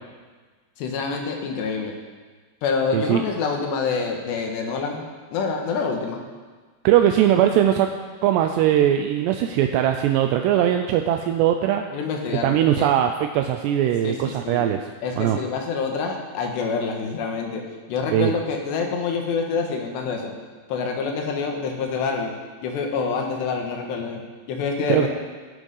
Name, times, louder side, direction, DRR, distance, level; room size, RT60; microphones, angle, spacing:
voice 1, 0.8-1.9 2.6-6.2 11.9-12.9 14.0-14.7 15.0-17.6 17.9-20.3 20.7-22.3 22.6-24.2 24.5-25.1, left 5 dB, 75° left, 2 dB, 3.6 m, -26 dB
voice 2, 2.9-3.2 6.8-7.9 8.2-11.8 12.3-14.8 15.2-15.4 18.1-18.3 24.9-25.1, right 11 dB, 80° right, 5 dB, 2.7 m, -20 dB
18.0 x 9.1 x 5.5 m, 1.4 s
omnidirectional pair, 5.2 m